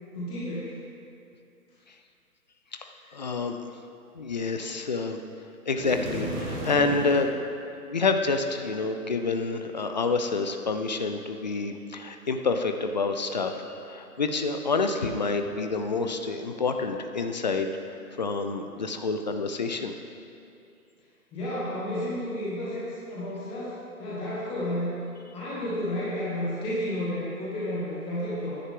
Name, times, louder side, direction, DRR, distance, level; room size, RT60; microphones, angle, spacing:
voice 1, 0.1-0.7 21.3-25.0 25.3-28.6, left 1 dB, 10° left, -9 dB, 1.4 m, -31 dB
voice 2, 2.8-3.6 4.1-5.2 5.7-7.3 7.9-17.7 18.2-19.9, left 4 dB, 30° left, 6 dB, 0.5 m, -28 dB
sound 1, 5.7-7.3, right 1 dB, 15° right, 1.2 m, -33 dB
13.5 x 10.0 x 3.6 m, 2.6 s
figure-of-eight pair, 135°, 45 cm